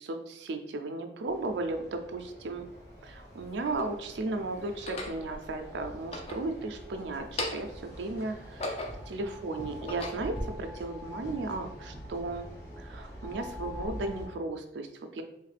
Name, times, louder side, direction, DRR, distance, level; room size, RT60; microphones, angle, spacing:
voice 1, 0.0-2.7 3.0-12.4 12.8-15.2, right 2 dB, 90° right, 6 dB, 0.4 m, -35 dB
sound 1, 1.3-14.3, left 1 dB, 15° left, 1.0 m, -45 dB
sound 2, 2.2-2.3 3.1-4.0 4.7-5.2 5.9-6.9 7.2-7.8 8.3-9.2 9.7-10.4, left 1 dB, 35° left, 0.6 m, -37 dB
3.2 x 3.1 x 3.3 m, 0.79 s
head